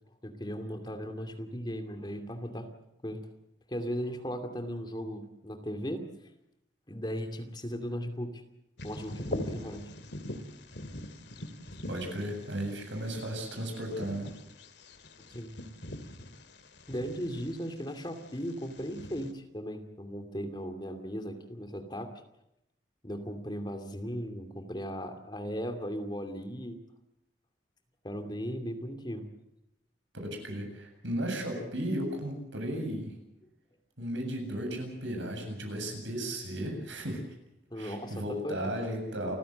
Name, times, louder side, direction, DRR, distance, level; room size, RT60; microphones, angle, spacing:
voice 1, 0.2-2.7 3.0-3.3 3.7-6.1 6.9-8.4 8.8-9.9 15.3-15.5 16.9-22.1 23.0-26.8 28.0-29.3 37.7-38.1 38.4-38.6, equal, 25° left, 7 dB, 2.6 m, -37 dB
Bird vocalization bird call bird song, 8.8-19.3, left 1 dB, 65° left, 2.4 m, -43 dB
voice 2, 11.9-14.3 30.1-33.1 34.0-37.2 37.8-39.4, right 1 dB, 80° right, 4 dB, 7.9 m, -35 dB
29.0 x 16.0 x 7.9 m, 0.82 s
head